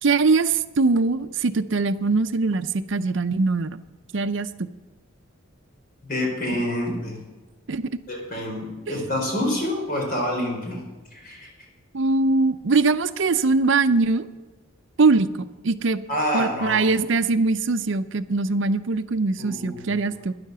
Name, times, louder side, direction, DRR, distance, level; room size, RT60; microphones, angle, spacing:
voice 1, 0.0-3.8 4.1-4.7 7.7-7.8 11.9-14.3 15.0-16.0 16.3-20.3, right 3 dB, 65° right, 11 dB, 0.6 m, -22 dB
voice 2, 6.0-7.2 8.1-10.8 11.1-11.5 16.1-16.9 19.4-20.0, left 1 dB, 45° left, 1 dB, 4.5 m, -27 dB
12.0 x 10.5 x 6.8 m, 1.2 s
head